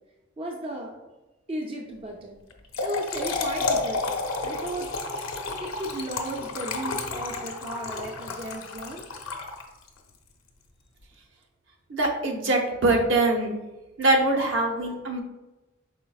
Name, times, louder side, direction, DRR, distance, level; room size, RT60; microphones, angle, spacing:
voice 1, 0.4-0.9 1.5-2.5 2.8-4.9 5.6-9.0, right 1 dB, 25° right, 0 dB, 0.4 m, -35 dB
Trickle dribble / Fill (with liquid), 2.5-10.0, left 3 dB, 85° left, 0.7 m, -31 dB
voice 2, 11.9-13.6 14.0-15.2, right 2 dB, 65° right, 1 dB, 0.8 m, -23 dB
5.0 x 4.0 x 2.3 m, 1.1 s
head